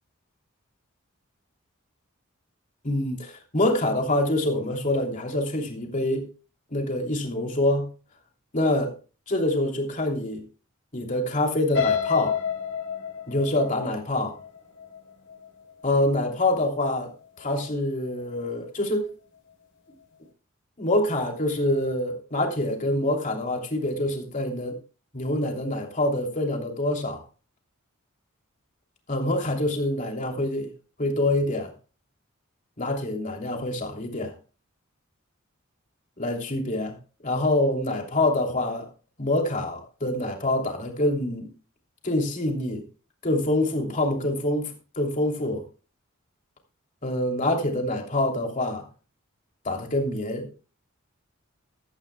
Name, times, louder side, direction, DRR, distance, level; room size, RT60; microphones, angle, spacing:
voice 1, 2.8-6.3 6.7-7.9 8.5-8.9 9.3-10.4 10.9-12.4 13.3-14.3 15.8-17.1 17.4-19.1 20.8-24.8 25.1-27.2 29.1-30.7 31.0-31.7 32.8-34.3 36.2-37.0 37.2-38.9 39.2-41.5 42.0-42.8 43.2-45.6 47.0-48.9 49.6-50.5, left 1 dB, 35° left, 3.0 m, -26 dB
sound 1, 11.7-15.7 16.2-16.5 16.8-16.9, left 7 dB, 55° left, 3.3 m, -29 dB
15.0 x 13.5 x 2.3 m
head